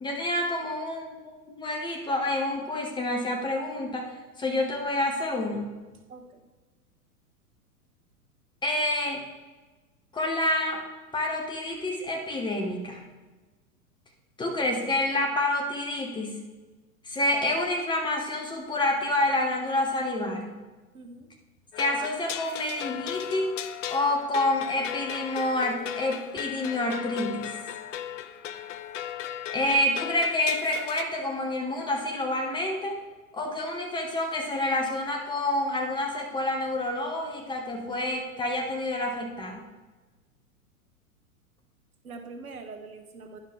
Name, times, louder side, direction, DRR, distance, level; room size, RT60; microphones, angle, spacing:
voice 1, 0.0-1.2 1.5-5.7 8.6-9.2 10.1-10.8 11.1-13.0 14.4-16.4 17.0-20.6 21.8-23.5 23.9-27.6 29.5-33.0 33.3-39.6, left 1 dB, 10° left, 1 dB, 0.7 m, -28 dB
voice 2, 6.1-6.4 20.9-21.3 42.0-43.4, right 3 dB, 70° right, 6 dB, 1.1 m, -43 dB
sound 1, 21.7-31.0, left 10 dB, 55° left, 0.6 m, -36 dB
10.0 x 5.8 x 3.5 m, 1.2 s
figure-of-eight pair, 100°, 45 cm